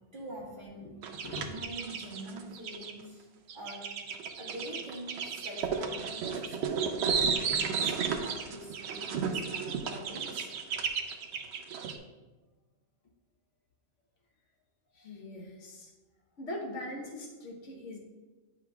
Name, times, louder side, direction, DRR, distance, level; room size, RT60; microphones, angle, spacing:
voice 1, 0.1-0.9 1.3-3.3 3.5-3.9 4.4-7.0 7.4-10.5, right 1 dB, 40° right, -5 dB, 1.6 m, -45 dB
sound 1, 1.0-2.9 3.5-12.0, right 6 dB, 65° right, 0.8 m, -33 dB
voice 2, 14.9-15.9 16.4-18.0, left 1 dB, 70° left, -1 dB, 1.3 m, -41 dB
9.4 x 4.8 x 2.3 m, 1.2 s
omnidirectional pair, 1.3 m